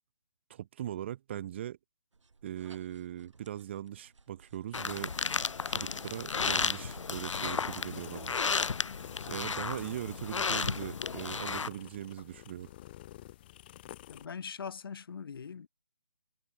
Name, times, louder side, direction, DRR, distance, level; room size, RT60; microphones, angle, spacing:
voice 1, 0.5-1.8 2.4-5.1 5.7-8.3 9.3-12.7, right 11 dB, 25° right, 0.8 m, -40 dB
sound 1, 2.1-8.0, right 4 dB, 75° right, 2.9 m, -55 dB
sound 2, 4.7-11.7, left 5 dB, 90° left, 0.6 m, -33 dB
sound 3, 7.4-14.3, left 15 dB, 20° left, 0.9 m, -50 dB
voice 2, 14.1-15.7, left 6 dB, 50° left, 1.6 m, -41 dB
hypercardioid pair, 160°, 15 cm